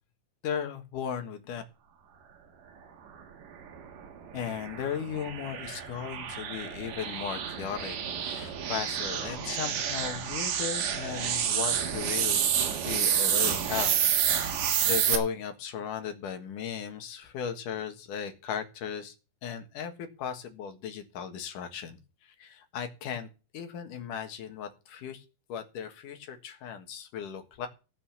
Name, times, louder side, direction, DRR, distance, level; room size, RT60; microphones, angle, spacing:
voice 1, 0.4-1.6 4.3-12.4 12.9-14.0 14.4-14.5 14.8-19.1 19.4-23.3 23.5-25.2 25.5-27.7, left 8 dB, 80° left, 6 dB, 3.1 m, -36 dB
sound 1, 3.6-15.2, right 8 dB, 80° right, 3.1 m, -29 dB
16.5 x 6.1 x 7.1 m, 0.33 s
omnidirectional pair, 3.7 m